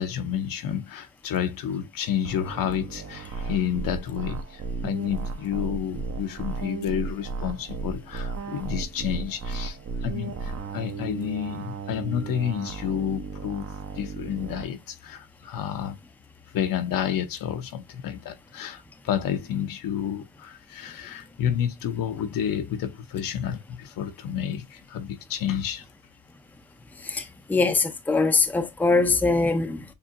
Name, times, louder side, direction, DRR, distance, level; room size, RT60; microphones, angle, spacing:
voice 1, 0.0-16.0 16.5-25.9, left 9 dB, 65° left, 0.9 m, -30 dB
sound 1, 2.2-14.6, right 4 dB, 40° right, 0.9 m, -35 dB
voice 2, 27.5-29.8, left 3 dB, 5° left, 0.6 m, -22 dB
7.0 x 2.7 x 2.6 m
cardioid pair, 125°, 37 cm